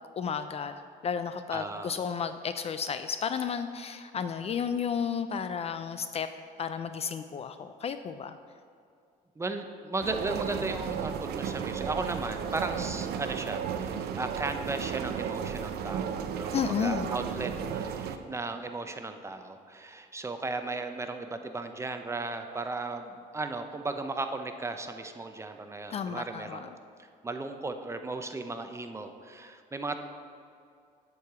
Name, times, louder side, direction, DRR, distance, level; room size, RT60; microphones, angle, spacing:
voice 1, 0.2-6.3 6.6-8.4 16.5-17.1 25.9-26.7, left 7 dB, 35° left, 10 dB, 0.4 m, -32 dB
voice 2, 1.5-2.0 9.4-30.0, right 3 dB, 15° right, 7 dB, 0.6 m, -36 dB
sound 1, 10.0-18.2, right 7 dB, 70° right, 0.6 m, -34 dB
8.3 x 4.8 x 6.9 m, 2.3 s
cardioid pair, 110°, 17 cm